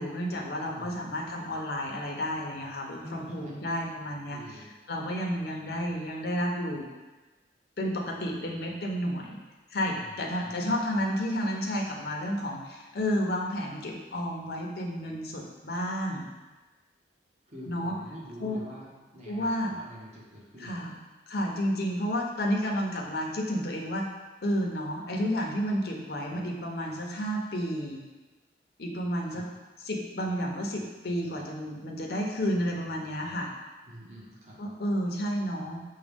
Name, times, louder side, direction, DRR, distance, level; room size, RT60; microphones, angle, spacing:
voice 1, 0.0-4.4 4.9-6.9 7.8-9.4 9.7-16.3 17.7-18.0 18.4-18.6 19.3-19.8 20.6-20.9 21.3-24.1 24.4-28.0 28.8-29.4 29.8-33.5 34.6-35.8, equal, 55° left, -1 dB, 0.6 m, -31 dB
voice 2, 0.7-1.2 3.0-3.6 4.3-4.7 10.0-10.6 17.5-20.8 29.3-29.5 33.9-34.6, equal, 35° right, -5 dB, 0.9 m, -46 dB
6.1 x 2.2 x 3.4 m, 1.2 s
head